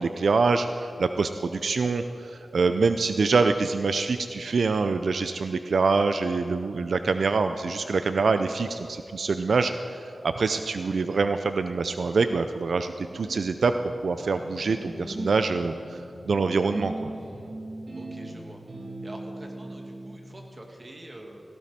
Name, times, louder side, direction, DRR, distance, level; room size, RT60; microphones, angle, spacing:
voice 1, 0.0-13.7 14.0-17.1, right 4 dB, 75° right, 9 dB, 0.5 m, -25 dB
sound 1, 13.0-20.1, right 1 dB, 60° right, 4.7 m, -39 dB
voice 2, 18.0-18.6 19.0-21.4, right 1 dB, 30° right, 1 dB, 2.2 m, -45 dB
17.5 x 16.0 x 4.3 m, 2.6 s
wide cardioid pair, 110°, 0 cm